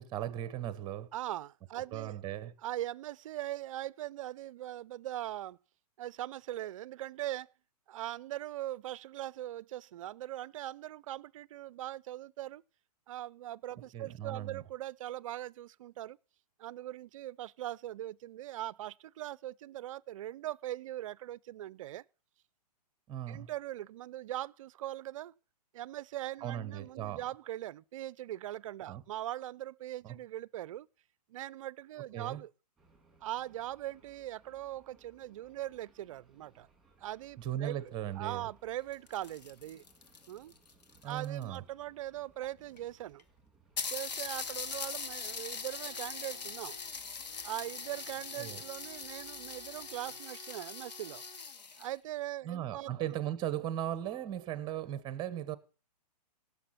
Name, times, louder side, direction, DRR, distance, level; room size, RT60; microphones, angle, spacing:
voice 1, 0.0-1.1 1.9-2.5 13.9-14.6 23.1-23.5 26.4-27.2 28.9-29.0 30.0-30.2 32.1-32.4 37.4-38.5 41.0-41.6 48.4-48.6 52.4-55.6, right 11 dB, 20° right, 1.1 m, -37 dB
voice 2, 1.1-2.2 2.6-5.6 6.0-7.5 7.9-12.6 13.1-16.2 16.6-22.0 23.3-25.3 25.7-30.9 31.3-32.5 33.2-36.7 37.0-37.8 38.2-39.8 40.3-40.5 41.0-43.2 43.9-46.8 47.4-51.2 51.8-53.1, right 14 dB, 50° right, 0.5 m, -41 dB
sound 1, 32.8-50.2, right 3 dB, ahead, 6.4 m, -66 dB
sound 2, 38.8-41.6 42.4-42.5 42.8-42.9 43.2-43.3 43.8-51.9, left 5 dB, 90° left, 2.0 m, -41 dB
17.5 x 7.0 x 5.8 m
hypercardioid pair, 145°, 21 cm